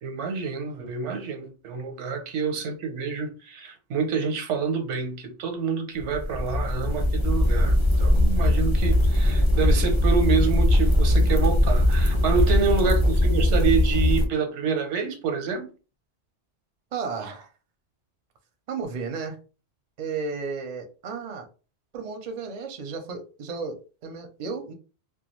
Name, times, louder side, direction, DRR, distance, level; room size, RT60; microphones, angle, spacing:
voice 1, 0.0-15.7, right 5 dB, 90° right, 1.0 m, -27 dB
sound 1, 6.0-14.3, left 1 dB, 40° left, 0.4 m, -20 dB
voice 2, 16.9-17.5 18.7-19.4 20.0-21.5 21.9-24.7, right 5 dB, 50° right, 0.5 m, -33 dB
2.2 x 2.2 x 2.9 m
omnidirectional pair, 1.2 m